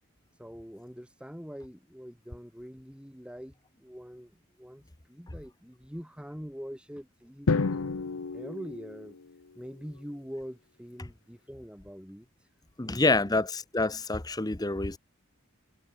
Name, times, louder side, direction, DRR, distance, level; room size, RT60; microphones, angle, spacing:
voice 1, 0.4-7.5 8.3-9.2 9.6-12.5 12.8-13.5, equal, 5° right, 5.7 m, -44 dB
Drum, 7.5-9.6, left 4 dB, 70° left, 0.7 m, -30 dB
voice 2, 12.8-15.0, left 2 dB, 15° left, 0.8 m, -27 dB
head